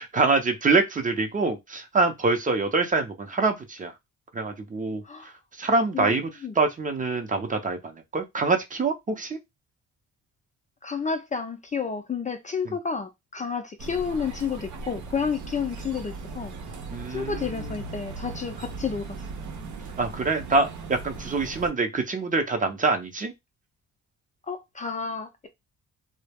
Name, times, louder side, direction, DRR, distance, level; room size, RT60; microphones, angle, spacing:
voice 1, 0.0-3.9 4.3-5.0 5.6-6.3 6.6-9.4 16.9-17.7 20.0-23.3, right 3 dB, 25° right, 0.6 m, -25 dB
voice 2, 10.8-16.5 17.1-19.0 24.5-25.5, left 6 dB, 25° left, 0.4 m, -30 dB
sound 1, 13.8-21.7, right 3 dB, 75° right, 0.7 m, -38 dB
2.2 x 2.0 x 3.3 m
cardioid pair, 90°, 30 cm